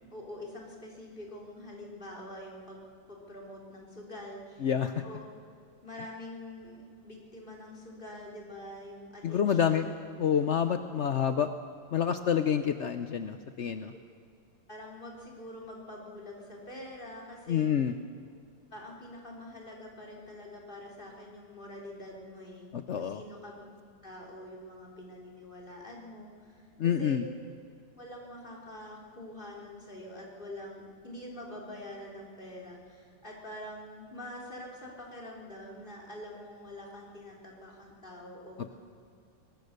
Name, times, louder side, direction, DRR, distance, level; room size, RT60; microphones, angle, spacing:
voice 1, 0.1-5.3 5.8-10.1 14.7-17.7 18.7-22.7 22.9-23.7 24.0-26.6 27.0-27.2 28.0-38.7, left 1 dB, 25° left, -2 dB, 3.9 m, -45 dB
voice 2, 4.6-4.9 9.2-9.9 10.2-11.5 11.9-13.9 17.5-17.9 22.7-23.2 26.8-27.2, left 8 dB, 70° left, 9 dB, 0.6 m, -28 dB
23.0 x 21.0 x 6.7 m, 2.4 s
omnidirectional pair, 2.2 m